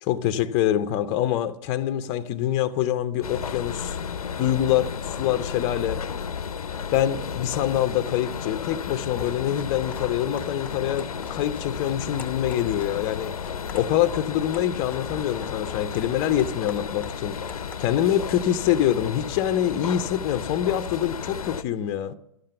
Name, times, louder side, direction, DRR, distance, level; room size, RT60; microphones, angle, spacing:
voice 1, 0.0-4.0 4.4-6.0 6.9-13.4 13.7-17.4 17.8-22.1, left 11 dB, 30° left, 0.7 m, -25 dB
sound 1, 3.2-21.6, left 7 dB, 90° left, 0.7 m, -33 dB
sound 2, 8.8-19.1, left 4 dB, 5° left, 0.9 m, -46 dB
12.5 x 7.4 x 6.7 m
hypercardioid pair, 135°, 18 cm